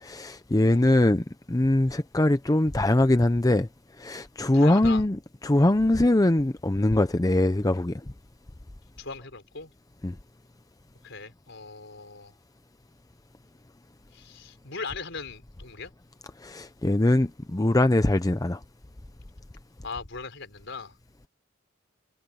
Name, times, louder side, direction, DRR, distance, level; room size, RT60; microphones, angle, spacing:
voice 1, 0.0-3.7 4.0-8.0 10.0-10.2 16.4-18.6, left 1 dB, 20° left, 0.6 m, -22 dB
voice 2, 4.5-5.0 9.0-9.7 11.0-12.3 14.1-15.9 19.8-21.0, left 4 dB, 65° left, 5.2 m, -39 dB
head